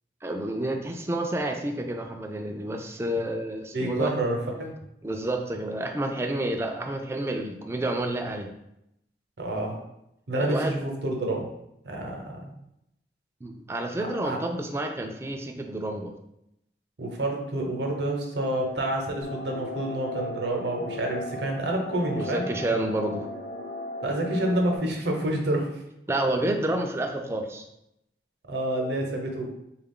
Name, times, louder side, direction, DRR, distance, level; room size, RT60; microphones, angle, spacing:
voice 1, 0.2-4.1 5.0-8.5 10.3-10.8 13.4-16.1 22.2-23.3 26.1-27.6, right 1 dB, 15° right, 3 dB, 0.3 m, -29 dB
voice 2, 3.7-4.7 9.4-9.8 10.3-11.5 11.8-12.5 14.0-14.4 17.0-22.5 24.0-25.7 28.5-29.5, right 1 dB, 70° right, 1 dB, 0.7 m, -28 dB
sound 1, 19.2-24.8, left 1 dB, 70° left, 0.6 m, -37 dB
3.6 x 2.3 x 3.7 m, 0.81 s
head